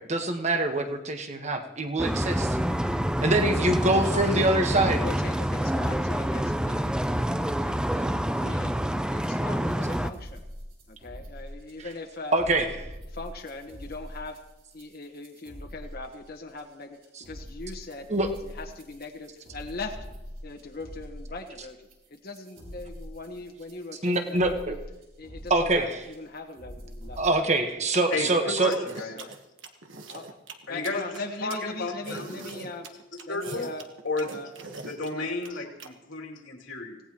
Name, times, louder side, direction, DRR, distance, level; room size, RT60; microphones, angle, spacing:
voice 1, 0.0-2.6 3.2-5.0 12.3-12.7 18.1-18.3 24.0-24.8 25.5-26.0 27.2-28.7, right 2 dB, 35° right, 5 dB, 1.4 m, -24 dB
sound 1, 2.0-10.1, equal, 5° right, 0.5 m, -27 dB
voice 2, 3.2-3.6 4.0-8.8 9.1-10.4 10.9-12.7 13.1-14.4 14.7-20.1 20.4-21.8 22.1-24.8 25.2-27.2 28.3-28.5 29.0-29.3 30.0-30.4 30.7-32.9 33.2-33.9 34.3-34.5 35.1-35.3, left 3 dB, 50° left, 3 dB, 1.4 m, -40 dB
sound 2, 9.7-27.3, equal, 50° right, 4.9 m, -44 dB
voice 3, 28.1-29.2 30.7-31.0 31.4-32.5 33.3-33.7 34.0-34.3 34.8-37.0, left 2 dB, 80° left, 0 dB, 3.0 m, -32 dB
sound 3, 28.7-35.9, right 3 dB, 80° right, 1.4 m, -41 dB
25.5 x 18.0 x 3.0 m, 0.99 s
head